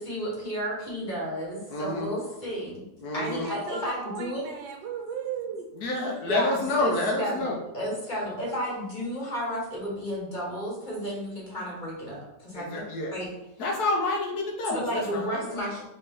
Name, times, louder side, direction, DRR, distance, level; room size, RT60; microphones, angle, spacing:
voice 1, 0.0-2.8 3.1-4.5 6.2-12.8 13.1-13.3 14.7-15.8, equal, 30° left, -4 dB, 1.3 m, -32 dB
voice 2, 1.7-2.1 3.0-3.5 5.7-7.6 12.5-13.1 13.6-15.6, left 2 dB, 65° left, -1 dB, 1.2 m, -29 dB
voice 3, 3.2-5.7, right 7 dB, 85° right, 3 dB, 1.4 m, -36 dB
4.1 x 3.5 x 3.6 m, 0.90 s
omnidirectional pair, 2.0 m